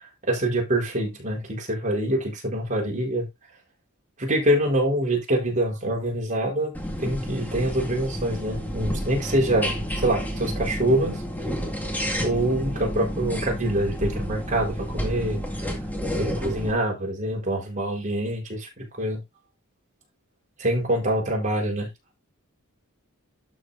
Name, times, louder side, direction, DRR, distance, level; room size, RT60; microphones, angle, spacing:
voice 1, 0.3-3.3 4.2-6.7 7.0-11.2 12.2-15.7 16.2-19.2 20.6-21.9, right 1 dB, 35° right, 4.3 m, -25 dB
sound 1, 6.7-16.7, equal, 10° left, 2.0 m, -30 dB
12.5 x 6.3 x 2.6 m
head